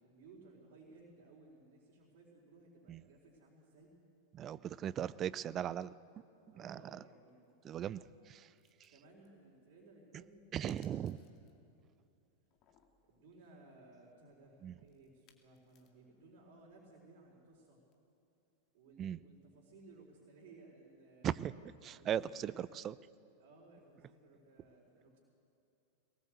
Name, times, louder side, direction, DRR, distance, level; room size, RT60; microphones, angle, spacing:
voice 1, 0.0-3.9 6.5-7.4 8.9-11.7 13.1-17.8 18.7-22.7 23.4-25.2, right 2 dB, 50° right, -4 dB, 4.2 m, -60 dB
voice 2, 4.3-5.9 6.6-7.0 7.6-8.5 10.5-11.2 14.6-14.7 19.0-19.2 21.2-21.5 21.8-22.9, right 10 dB, 30° right, 19 dB, 0.5 m, -38 dB
sound 1, 6.6-6.9 7.3-7.5 8.6-9.3 10.7-11.7 11.9-12.0 12.5-13.1 14.9-16.2 17.9-18.0, left 8 dB, 35° left, 2.3 m, -68 dB
22.5 x 19.0 x 8.0 m, 2.6 s
figure-of-eight pair, 90°, 0 cm